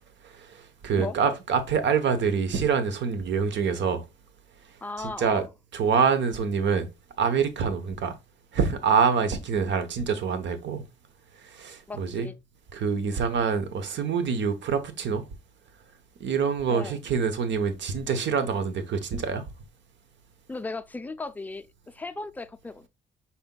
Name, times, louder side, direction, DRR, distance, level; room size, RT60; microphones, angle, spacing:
voice 1, 0.2-4.0 5.0-5.4 5.7-6.9 7.2-8.2 8.5-10.8 11.4-12.3 12.7-15.2 16.2-19.4, right 6 dB, 65° right, 0.9 m, -26 dB
voice 2, 4.8-5.5 11.9-12.3 16.7-17.0 20.5-22.9, left 3 dB, 10° left, 0.4 m, -36 dB
5.6 x 4.2 x 2.2 m
cardioid pair, 90°, 20 cm